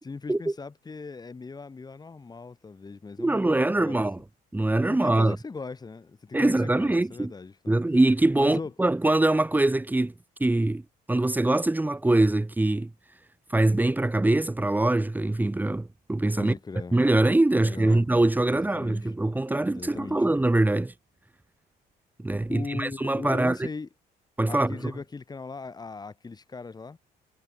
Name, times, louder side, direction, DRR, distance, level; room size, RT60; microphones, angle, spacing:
voice 1, 0.0-4.0 4.9-7.8 8.4-8.7 16.4-17.0 17.6-18.1 18.5-19.1 19.7-20.2 22.5-23.9 24.5-27.0, left 4 dB, 25° left, 7.3 m, -39 dB
voice 2, 3.2-4.2 4.5-5.4 6.3-7.3 7.7-10.1 10.4-10.8 11.1-12.9 13.5-16.5 16.9-20.9 22.2-23.7 24.4-24.9, right 2 dB, 10° right, 2.9 m, -23 dB
cardioid pair, 110°, 17 cm